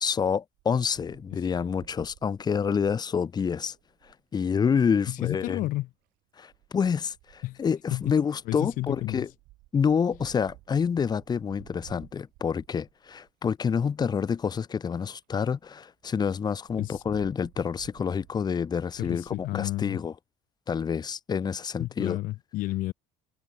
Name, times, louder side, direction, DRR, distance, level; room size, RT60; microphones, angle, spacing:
voice 1, 0.0-3.7 4.3-5.6 6.4-9.3 9.7-20.1 20.7-22.2, left 6 dB, 25° left, 0.8 m, -28 dB
Wind, 0.6-4.2 5.3-5.8 6.5-13.5 14.1-14.2 14.4-14.5 14.8-14.9 15.2-15.3 15.5-15.7 16.1-19.5, right 20 dB, 75° right, 3.0 m, -55 dB
voice 2, 5.1-5.9 7.4-7.6 7.9-8.1 8.5-9.3 16.8-17.0 19.0-20.0 21.8-22.9, left 18 dB, 65° left, 0.7 m, -31 dB
supercardioid pair, 105°, 15 cm